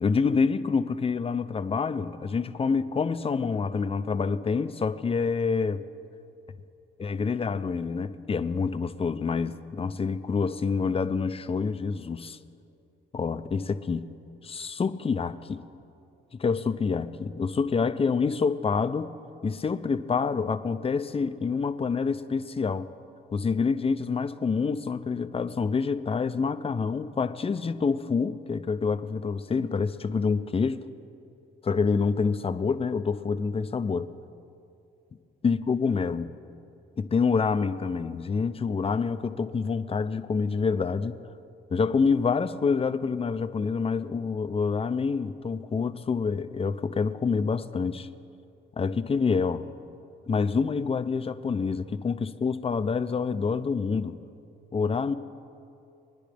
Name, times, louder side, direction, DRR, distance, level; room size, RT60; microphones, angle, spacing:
voice 1, 0.0-5.8 7.0-12.4 13.1-14.0 14.4-15.6 16.3-19.1 19.4-22.9 23.3-30.8 31.6-34.1 35.4-36.3 37.0-41.2 41.7-48.1 48.8-49.6 50.3-54.2 54.7-55.1, left 5 dB, 30° left, 10 dB, 0.6 m, -27 dB
24.5 x 10.5 x 3.4 m, 2.6 s
cardioid pair, 90°, 20 cm